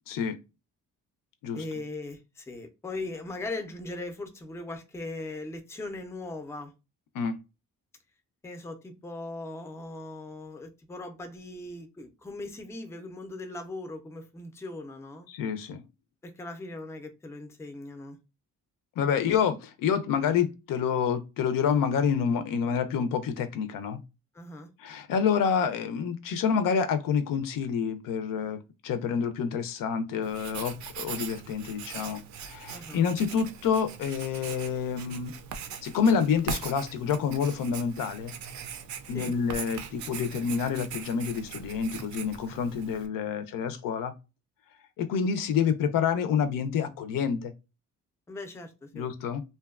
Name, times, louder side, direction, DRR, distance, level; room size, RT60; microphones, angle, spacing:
voice 1, 0.1-0.4 1.4-1.6 7.1-7.4 15.3-15.8 19.0-24.0 24.8-35.3 35.8-38.3 39.1-44.1 45.0-47.5 48.9-49.4, left 7 dB, 75° left, 0.5 m, -28 dB
voice 2, 1.5-6.7 8.4-15.3 16.2-18.2 24.3-24.7 32.7-33.1 39.1-39.3 48.3-49.1, left 2 dB, 10° left, 0.4 m, -39 dB
Writing, 30.2-43.1, right 7 dB, 60° right, 0.4 m, -41 dB
2.6 x 2.2 x 2.3 m
cardioid pair, 110°, 33 cm